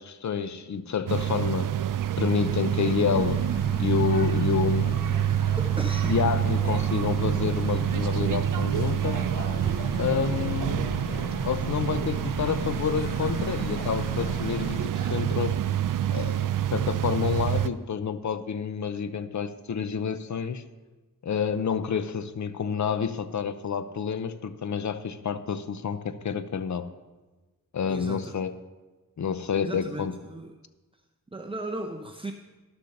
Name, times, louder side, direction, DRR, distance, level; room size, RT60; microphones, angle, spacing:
voice 1, 0.0-1.7 2.2-3.4 3.8-5.1 6.1-9.2 9.9-10.9 11.4-15.5 16.1-20.6 21.2-26.9 27.7-28.5 29.2-30.2, left 7 dB, 55° left, 12 dB, 0.8 m, -29 dB
sound 1, 1.1-17.7, right 11 dB, 65° right, 0.6 m, -27 dB
sound 2, 3.1-14.9, left 4 dB, 30° left, 0.4 m, -37 dB
voice 2, 5.6-6.2 27.9-28.3 29.6-30.5 31.3-32.3, right 2 dB, 15° right, 4 dB, 0.7 m, -36 dB
11.5 x 6.9 x 6.6 m, 1.2 s
cardioid pair, 75°, 35 cm